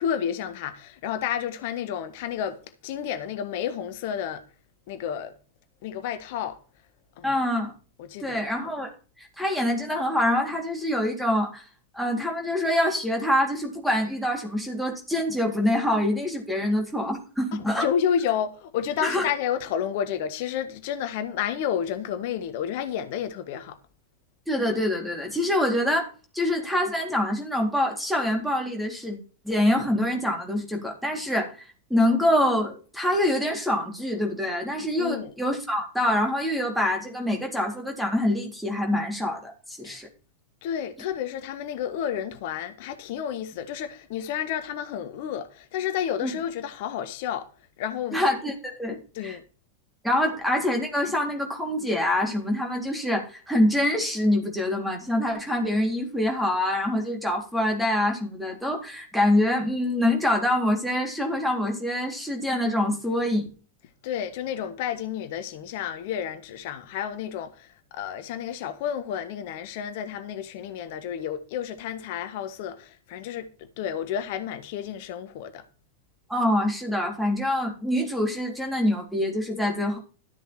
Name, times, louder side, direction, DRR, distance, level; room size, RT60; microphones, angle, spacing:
voice 1, 0.0-4.4 4.9-5.4 5.8-6.6 7.2-7.3 8.0-8.4 16.6-16.7 17.5-23.8 35.0-35.3 39.8-40.0 40.6-47.5 47.8-48.2 48.9-49.4 64.0-75.6, left 9 dB, 50° left, 1.4 m, -31 dB
voice 2, 7.2-7.7 8.2-8.9 9.4-11.6 11.9-17.9 19.0-19.3 24.5-26.1 26.3-29.2 29.4-31.6 31.9-40.1 46.2-46.3 48.1-49.4 50.0-63.5 76.3-80.0, left 1 dB, ahead, 3.5 m, -25 dB
13.0 x 7.0 x 4.3 m
figure-of-eight pair, 90°, 0 cm